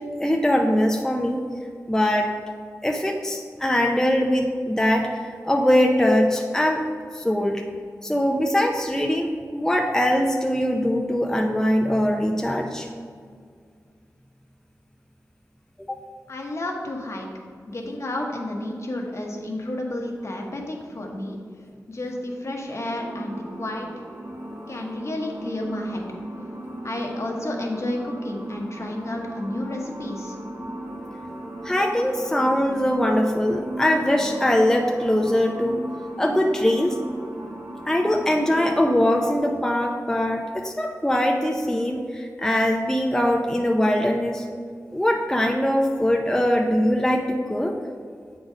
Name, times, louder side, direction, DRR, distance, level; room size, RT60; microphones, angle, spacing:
voice 1, 0.2-1.4 1.9-2.3 2.8-6.8 7.1-7.6 8.0-12.9 15.9-16.0 31.6-35.8 36.2-36.9 37.9-44.5 44.9-47.7, left 1 dB, 10° left, 1 dB, 0.6 m, -22 dB
voice 2, 16.3-17.3 17.7-21.4 21.9-23.9 24.7-26.0 26.8-30.3, left 1 dB, 50° left, 0 dB, 1.1 m, -31 dB
sound 1, 22.9-39.4, right 1 dB, 50° right, 1.8 m, -36 dB
7.7 x 4.0 x 5.0 m, 2.1 s
wide cardioid pair, 60°, 6 cm